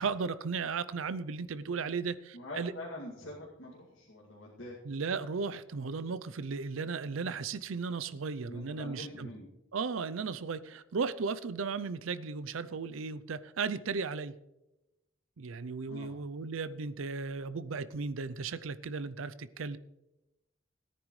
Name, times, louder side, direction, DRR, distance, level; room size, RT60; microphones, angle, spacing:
voice 1, 0.0-2.7 4.8-9.3 9.7-14.3 15.4-19.8, right 5 dB, 80° right, 0.5 m, -35 dB
voice 2, 2.3-4.8 8.5-9.5 15.9-16.1, left 1 dB, 70° left, 2.4 m, -44 dB
17.5 x 10.0 x 3.2 m
head